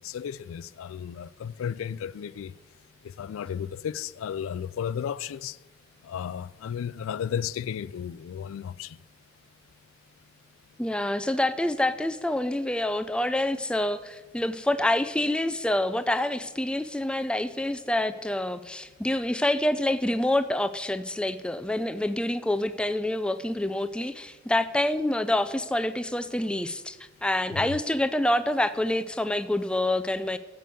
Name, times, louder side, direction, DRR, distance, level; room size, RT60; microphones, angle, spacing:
voice 1, 0.0-2.5 3.0-5.6 6.0-9.0 27.5-27.8, left 8 dB, 85° left, 0.3 m, -34 dB
voice 2, 10.8-27.0 27.2-30.4, left 1 dB, 5° left, 0.3 m, -27 dB
6.9 x 6.8 x 7.6 m
head